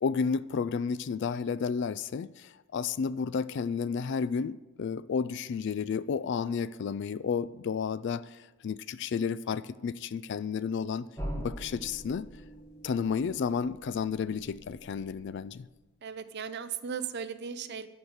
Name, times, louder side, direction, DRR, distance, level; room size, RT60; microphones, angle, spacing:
voice 1, 0.0-8.4 8.6-11.1 11.4-12.3 12.8-15.7, left 6 dB, 55° left, 0.3 m, -32 dB
sound 1, 11.2-15.8, equal, 15° left, 1.6 m, -43 dB
voice 2, 16.0-17.9, right 7 dB, 50° right, 0.6 m, -37 dB
13.0 x 4.7 x 6.5 m
head